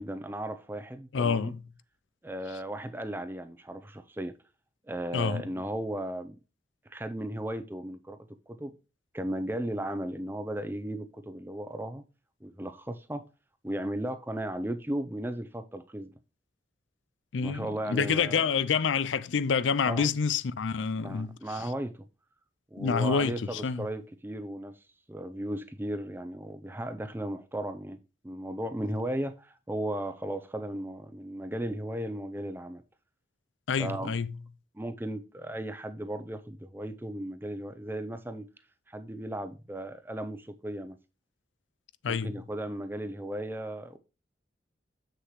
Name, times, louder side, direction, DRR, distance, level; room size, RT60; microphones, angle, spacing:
voice 1, 0.0-1.5 2.2-4.4 4.9-6.4 6.9-8.7 9.1-12.0 12.4-13.3 13.6-16.1 17.4-18.4 19.8-20.1 21.0-22.0 22.7-24.7 25.1-32.8 33.8-34.1 34.7-38.5 38.9-41.0 42.1-44.0, right 1 dB, 10° right, 0.6 m, -36 dB
voice 2, 1.1-1.6 5.1-5.5 17.3-21.6 22.8-23.9 33.7-34.3 42.0-42.3, left 5 dB, 90° left, 0.5 m, -28 dB
7.6 x 6.6 x 3.1 m
head